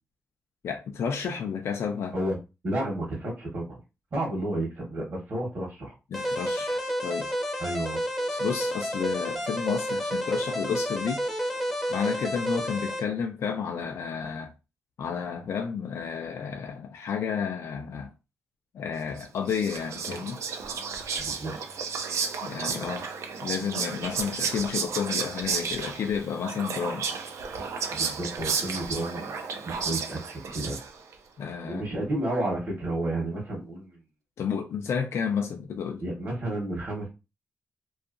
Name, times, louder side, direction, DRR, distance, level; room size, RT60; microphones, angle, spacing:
voice 1, 0.6-2.1 6.1-7.3 8.3-11.2 11.9-14.5 15.0-18.1 18.7-20.4 22.4-23.1 23.4-27.1 31.4-31.8 34.4-36.0, left 6 dB, 65° left, 0.4 m, -31 dB
voice 2, 2.6-3.8 4.1-5.9 7.6-8.0 21.2-21.8 27.9-29.4 29.7-30.8 31.7-34.0 36.0-37.1, right 1 dB, 40° right, 0.9 m, -31 dB
sound 1, 6.1-13.0, equal, ahead, 0.6 m, -30 dB
Whispering, 19.2-31.1, right 5 dB, 80° right, 0.4 m, -33 dB
2.7 x 2.4 x 2.4 m
wide cardioid pair, 155°, 5 cm